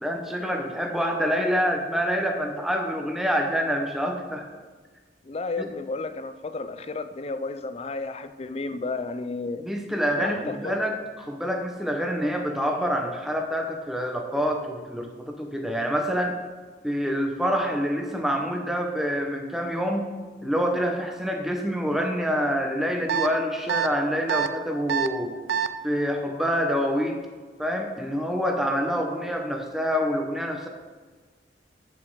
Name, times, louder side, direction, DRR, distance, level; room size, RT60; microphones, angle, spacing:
voice 1, 0.0-4.4 5.6-5.7 9.6-16.4 16.8-20.1 20.4-25.3 25.8-27.2 27.6-30.7, equal, ahead, 2 dB, 0.8 m, -26 dB
voice 2, 5.2-9.7 10.2-10.7, left 3 dB, 35° left, 11 dB, 0.4 m, -32 dB
sound 1, 23.1-23.3 23.7-23.9 24.3-24.5 24.9-25.1 25.5-25.7, right 8 dB, 65° right, 0.4 m, -24 dB
8.5 x 7.4 x 4.7 m, 1.4 s
head